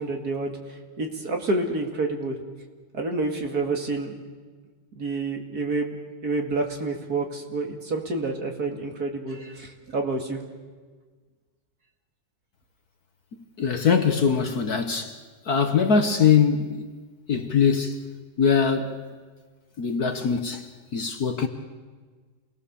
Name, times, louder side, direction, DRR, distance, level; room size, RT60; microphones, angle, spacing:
voice 1, 0.0-2.4 2.9-4.2 5.0-6.0 6.2-10.4, right 3 dB, 45° right, 2.7 m, -28 dB
voice 2, 13.6-15.2 15.4-16.8 17.3-18.0 18.4-18.9 19.8-21.5, left 6 dB, 50° left, 1.6 m, -22 dB
28.5 x 19.5 x 7.1 m
omnidirectional pair, 2.3 m